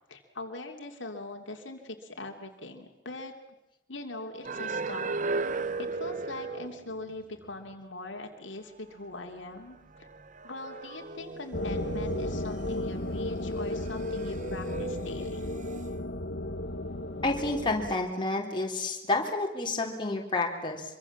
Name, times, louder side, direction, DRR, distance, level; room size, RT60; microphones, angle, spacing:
voice 1, 0.1-3.3 3.9-5.1 5.8-10.1 10.4-15.5, left 2 dB, 75° left, 3 dB, 2.9 m, -41 dB
sound 1, 4.4-7.1 7.4-7.5 9.2-9.3 9.9-13.0 13.5-15.8 16.8-17.4 17.7-18.0, right 4 dB, 40° right, 0.9 m, -36 dB
sound 2, 11.5-17.9, left 1 dB, 60° left, 1.4 m, -34 dB
voice 2, 17.2-20.8, left 2 dB, 25° left, 0 dB, 3.7 m, -30 dB
25.5 x 24.0 x 7.3 m, 0.92 s
head